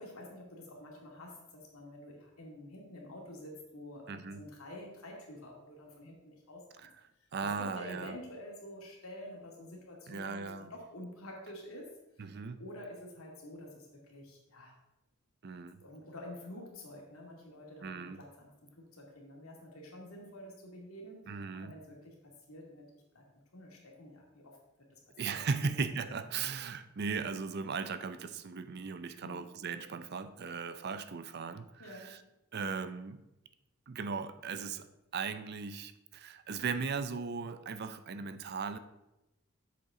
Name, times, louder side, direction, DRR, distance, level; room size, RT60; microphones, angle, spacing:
voice 1, 0.0-6.9 7.2-12.3 12.6-14.7 15.8-24.6 24.9-25.0 25.3-25.8 29.2-29.5 31.8-32.3, left 1 dB, 85° left, -1 dB, 2.3 m, -49 dB
voice 2, 4.1-4.4 6.8-6.9 7.3-8.2 10.1-10.7 12.2-12.6 15.4-15.8 17.8-18.2 21.3-21.7 25.2-32.2 32.5-33.2 33.9-34.9 35.1-38.8, right 5 dB, 50° right, 11 dB, 0.5 m, -37 dB
7.9 x 6.8 x 3.7 m, 0.93 s
head